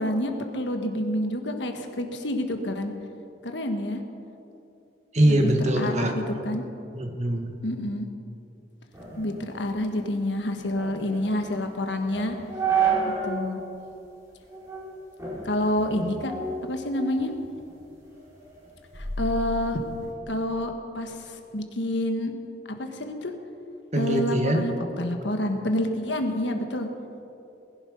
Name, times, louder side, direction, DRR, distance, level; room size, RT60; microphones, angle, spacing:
voice 1, 0.0-2.9 3.4-4.0 5.2-6.6 7.6-8.1 9.2-12.4 13.2-13.6 15.4-16.3 16.6-17.3 18.9-19.8 20.3-22.3 22.8-23.3 23.9-26.9, left 1 dB, 90° left, 5 dB, 1.4 m, -28 dB
voice 2, 5.1-6.1 6.9-7.6 23.9-24.6, right 1 dB, 40° right, 3 dB, 1.7 m, -22 dB
sound 1, 8.9-13.4 13.8-13.9 14.5-14.9 15.2-17.3 17.7-20.1, right 5 dB, 15° right, 4.2 m, -31 dB
20.0 x 11.0 x 5.3 m, 2.8 s
head